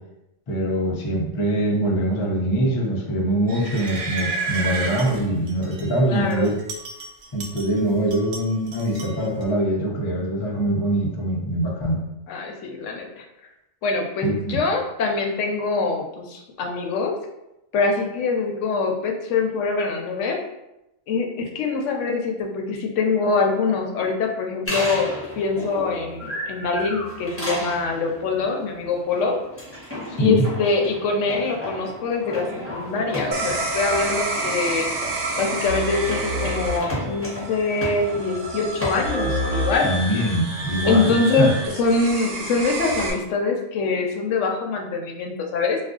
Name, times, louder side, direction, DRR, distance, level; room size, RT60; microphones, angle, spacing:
voice 1, 0.5-6.5 7.3-12.0 14.2-14.6 30.1-30.4 39.8-41.5, right 1 dB, 40° left, -2 dB, 0.4 m, -23 dB
sound 1, 3.5-5.9 6.3-7.8 8.1-9.4, right 4 dB, 60° right, 0.4 m, -31 dB
voice 2, 6.0-6.5 12.3-13.3 13.8-17.1 17.7-20.4 21.1-29.4 30.2-32.5 32.7-34.9 35.4-39.9 40.8-45.8, left 4 dB, 85° left, 2 dB, 0.9 m, -24 dB
sound 2, 24.7-38.9, equal, 10° left, 0.9 m, -34 dB
sound 3, 33.3-43.1, right 2 dB, 85° right, 0.9 m, -28 dB
2.5 x 2.3 x 3.6 m, 0.90 s
omnidirectional pair, 1.2 m